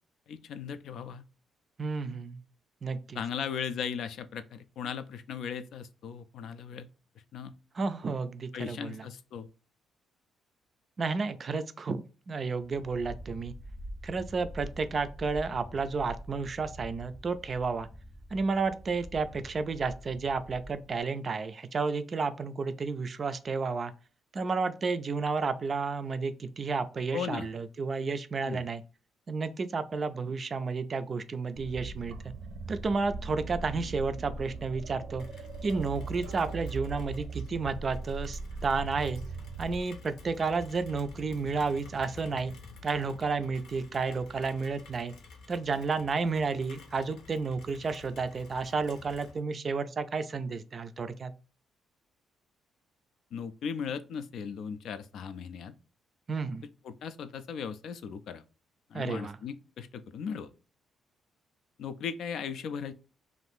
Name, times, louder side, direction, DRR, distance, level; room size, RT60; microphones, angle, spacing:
voice 1, 0.3-1.2 3.1-6.9 7.3-7.5 8.5-9.5 27.1-27.5 28.5-28.6 53.3-55.7 56.8-58.4 58.9-60.5 61.8-62.9, left 7 dB, 70° left, 0.3 m, -37 dB
voice 2, 1.8-2.4 2.8-3.2 7.7-9.0 11.0-13.5 14.0-17.9 18.3-23.9 24.3-28.8 29.3-32.3 32.7-35.3 35.6-39.2 39.6-42.5 42.8-45.1 45.5-51.3 56.3-56.7 58.9-59.4, right 4 dB, 35° right, 0.3 m, -31 dB
sound 1, 12.6-21.0, equal, 25° left, 0.7 m, -46 dB
sound 2, 31.5-39.8, right 3 dB, 85° right, 0.6 m, -39 dB
Rain, 35.2-49.4, left 3 dB, 85° left, 0.7 m, -50 dB
2.6 x 2.5 x 3.4 m
cardioid pair, 120°, 0 cm